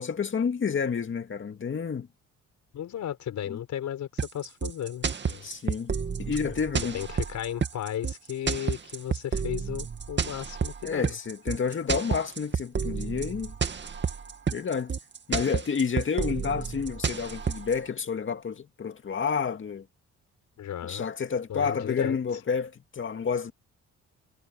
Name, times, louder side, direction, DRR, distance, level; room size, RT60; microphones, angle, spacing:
voice 1, 0.0-2.1 3.5-3.6 5.4-5.9 6.2-7.0 10.8-13.5 14.5-14.9 15.3-19.9 20.8-23.5, left 6 dB, 40° left, 2.3 m, -30 dB
voice 2, 2.7-5.5 6.9-11.2 20.6-21.1 21.5-22.2, left 10 dB, 70° left, 5.6 m, -35 dB
sound 1, 4.2-17.8, right 6 dB, 35° right, 2.2 m, -30 dB
cardioid pair, 90°, 30 cm